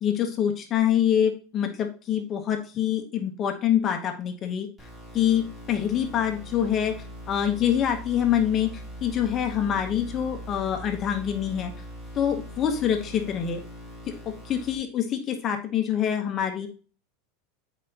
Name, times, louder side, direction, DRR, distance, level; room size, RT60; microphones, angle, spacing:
voice 1, 0.0-4.7 5.1-7.0 7.3-11.7 12.1-13.6 14.1-16.7, left 9 dB, 35° left, 4 dB, 1.1 m, -25 dB
sound 1, 4.8-14.8, equal, 15° right, 3.9 m, -41 dB
9.9 x 5.0 x 2.9 m, 0.38 s
supercardioid pair, 135°, 0 cm